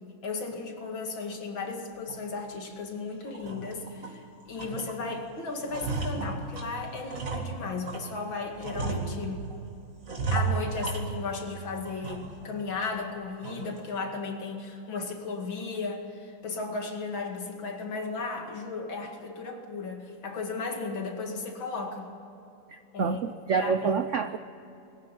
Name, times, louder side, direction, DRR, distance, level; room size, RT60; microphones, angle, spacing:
voice 1, 0.2-9.5 10.3-22.1 22.9-23.2 23.5-23.9, left 4 dB, 80° left, 3 dB, 3.0 m, -35 dB
sound 1, 2.1-2.2 2.7-2.8 3.3-4.2 4.6-5.2 5.5-8.1 8.6-9.6 10.0-11.5 11.8-12.5 12.8-12.9 13.4-13.8, right 4 dB, 45° right, 2.6 m, -34 dB
voice 2, 22.7-24.4, right 5 dB, 70° right, 10 dB, 0.7 m, -28 dB
22.0 x 14.5 x 9.3 m, 2.8 s
omnidirectional pair, 2.1 m